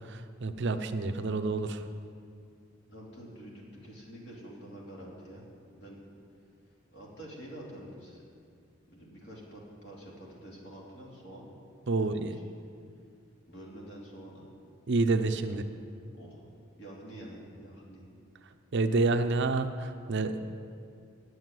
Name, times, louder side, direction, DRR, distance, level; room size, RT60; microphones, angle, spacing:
voice 1, 0.1-1.8 11.9-12.4 14.9-15.6 18.7-20.4, right 3 dB, 60° right, 8 dB, 0.6 m, -28 dB
voice 2, 2.9-5.4 5.7-6.0 6.9-8.2 8.9-11.5 11.9-12.4 13.5-14.4 15.2-15.7 16.1-16.5 16.8-18.0, right 1 dB, 60° left, -3 dB, 2.7 m, -47 dB
8.8 x 7.9 x 9.2 m, 2.3 s
head